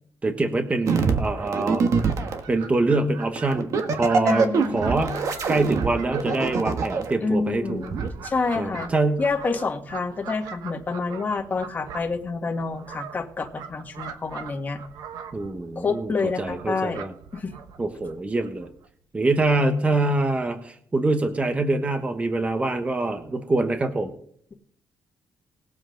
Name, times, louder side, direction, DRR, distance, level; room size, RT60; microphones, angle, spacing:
voice 1, 0.2-1.8 2.5-5.2 5.5-7.8 8.6-9.2 15.3-16.1 16.4-17.1 17.8-18.7 19.1-24.1, right 2 dB, 20° right, 7 dB, 1.2 m, -24 dB
sound 1, 0.9-2.4 3.4-7.1 7.9-8.1, right 5 dB, 60° right, 1.4 m, -24 dB
Fowl, 1.6-18.9, right 6 dB, 90° right, 1.1 m, -42 dB
voice 2, 4.2-5.0 7.2-8.0 8.2-8.9 9.2-14.8 15.8-17.0 17.3-17.5, left 4 dB, 25° left, 2 dB, 1.8 m, -28 dB
20.0 x 7.5 x 3.9 m, 0.63 s
cardioid pair, 120°, 6 cm